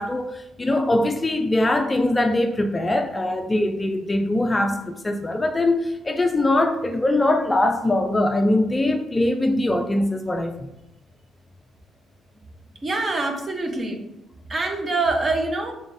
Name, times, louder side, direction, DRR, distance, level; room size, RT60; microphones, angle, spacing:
voice 1, 0.0-10.7, left 1 dB, 20° left, 0.4 m, -22 dB
voice 2, 12.8-14.0 14.5-15.7, right 3 dB, 35° right, 0.8 m, -24 dB
3.9 x 3.7 x 2.6 m
cardioid pair, 90°, 0 cm